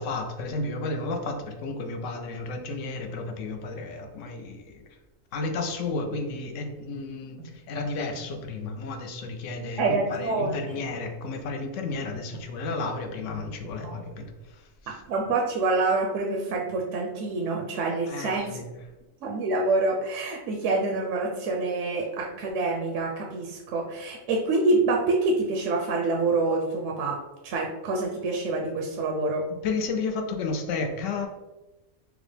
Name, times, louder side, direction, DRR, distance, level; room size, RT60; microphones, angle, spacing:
voice 1, 0.0-5.0 5.3-15.0 18.1-18.6 29.6-31.3, left 3 dB, 70° left, 4 dB, 0.9 m, -32 dB
sound 1, 7.4-8.3 10.1-10.8 11.9-12.5 13.4-14.0, right 4 dB, 35° right, 0.4 m, -44 dB
voice 2, 9.8-10.8 13.8-13.9 14.9-18.6 19.2-27.2 27.4-29.5, right 3 dB, 70° right, 0 dB, 0.8 m, -26 dB
4.9 x 2.0 x 3.2 m, 1.1 s
omnidirectional pair, 1.4 m